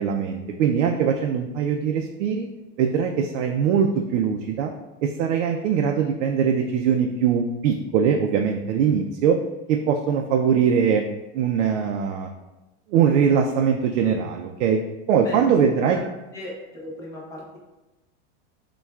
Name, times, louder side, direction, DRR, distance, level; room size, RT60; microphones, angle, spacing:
voice 1, 0.0-2.5 2.8-4.7 5.0-9.4 9.7-11.0 11.3-12.3 12.9-14.8 15.1-16.0, right 7 dB, 85° right, 3 dB, 0.5 m, -21 dB
voice 2, 16.3-17.6, left 1 dB, 10° left, -4 dB, 0.5 m, -37 dB
6.9 x 2.3 x 2.3 m, 1.1 s
supercardioid pair, 165°, 36 cm